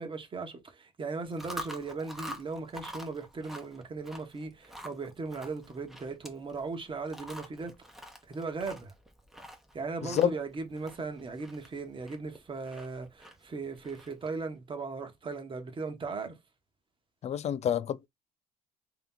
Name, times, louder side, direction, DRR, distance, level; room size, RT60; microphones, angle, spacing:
voice 1, 0.0-7.7 8.3-8.9 9.7-16.4, right 4 dB, 30° right, 1.1 m, -38 dB
Chewing mastication, 1.2-14.4, equal, ahead, 0.9 m, -47 dB
voice 2, 10.0-10.3 17.2-18.1, left 9 dB, 40° left, 0.4 m, -28 dB
3.4 x 2.9 x 3.7 m
cardioid pair, 110°, 17 cm